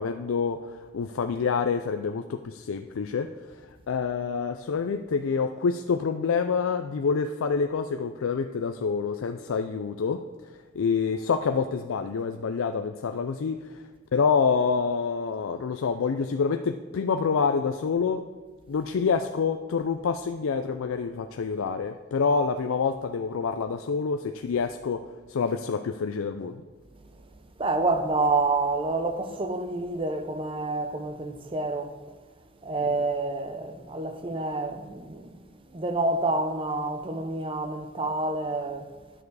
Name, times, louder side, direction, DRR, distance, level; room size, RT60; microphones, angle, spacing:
voice 1, 0.0-3.3 3.9-10.2 10.7-13.8 14.1-18.2 18.7-25.0 25.3-26.6, left 5 dB, 80° left, 0.4 m, -27 dB
voice 2, 27.6-32.0 32.6-35.4 35.7-38.9, right 2 dB, 25° right, 0.6 m, -28 dB
11.0 x 6.9 x 4.7 m
head